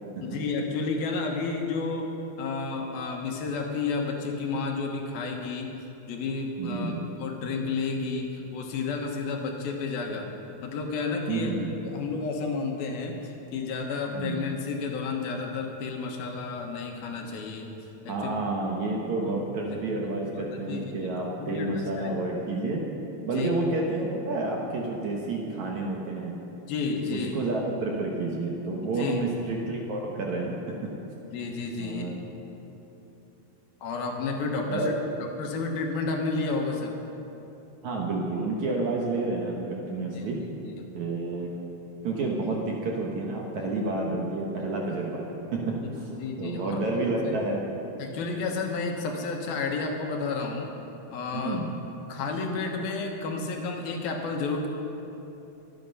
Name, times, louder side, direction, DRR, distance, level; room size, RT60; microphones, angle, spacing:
voice 1, 0.2-5.7 6.1-6.9 7.2-10.3 10.6-11.5 11.8-17.7 18.0-18.3 19.2-19.4 20.0-20.1 20.3-20.4 20.7-22.2 23.2-23.5 26.7-27.3 28.8-29.3 31.2-32.2 33.8-34.9 35.4-37.0 40.1-40.9 46.2-47.0 47.2-47.4 48.0-50.7 51.1-51.6 52.1-54.7, left 4 dB, 75° left, 1 dB, 3.1 m, -31 dB
voice 2, 6.6-7.1 11.3-11.7 14.1-14.5 18.1-22.8 23.2-26.4 27.1-30.8 31.8-32.1 34.7-35.1 37.8-40.4 40.9-41.5 42.0-46.1 46.4-47.6 51.3-51.8, right 2 dB, 60° right, -1 dB, 2.2 m, -30 dB
24.0 x 9.2 x 5.5 m, 3.0 s
omnidirectional pair, 4.5 m